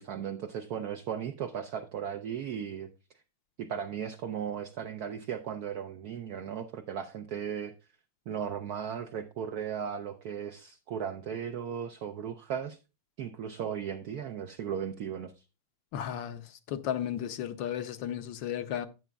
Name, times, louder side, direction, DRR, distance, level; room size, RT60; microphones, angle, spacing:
voice 1, 0.0-2.9 3.6-7.7 8.3-12.8 13.2-15.4, right 8 dB, 85° right, 0.8 m, -36 dB
voice 2, 15.9-18.9, left 10 dB, 75° left, 1.2 m, -34 dB
12.5 x 9.1 x 2.3 m
omnidirectional pair, 2.3 m